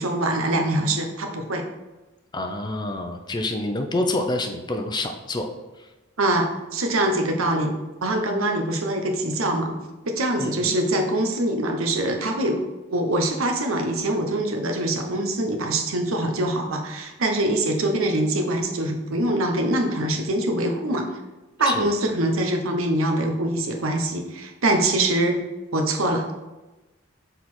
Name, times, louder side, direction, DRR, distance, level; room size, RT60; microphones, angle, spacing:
voice 1, 0.0-1.6 6.2-7.7 8.0-9.7 10.0-12.6 12.9-21.1 21.6-25.4 25.7-26.3, right 1 dB, 90° right, 3 dB, 1.0 m, -24 dB
voice 2, 2.3-5.5 5.8-5.9 10.4-10.7 21.7-21.9, left 2 dB, 20° left, 5 dB, 0.5 m, -27 dB
6.6 x 4.0 x 4.3 m, 1.1 s
head